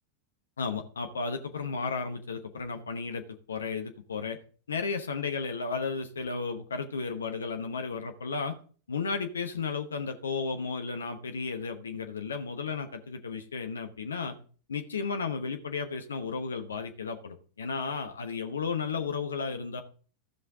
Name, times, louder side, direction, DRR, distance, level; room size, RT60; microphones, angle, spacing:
voice 1, 0.6-4.4 4.7-8.6 8.9-14.4 14.7-19.8, left 5 dB, 70° left, 6 dB, 0.9 m, -33 dB
15.0 x 5.5 x 3.7 m, 0.42 s
figure-of-eight pair, 90°, 0 cm